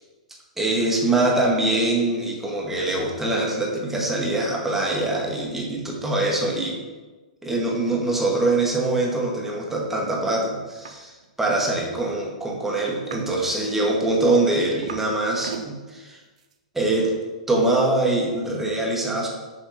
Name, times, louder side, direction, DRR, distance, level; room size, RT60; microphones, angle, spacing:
voice 1, 0.6-6.8 7.4-16.2 16.7-17.1 17.5-19.3, right 2 dB, 5° right, -2 dB, 1.7 m, -23 dB
sound 1, 10.8-11.0 11.2-11.7 12.9-13.4 13.9-15.1 15.4-15.7 16.4-16.5, right 6 dB, 65° right, 0.8 m, -38 dB
6.8 x 5.2 x 4.1 m, 1.3 s
figure-of-eight pair, 110°, 4 cm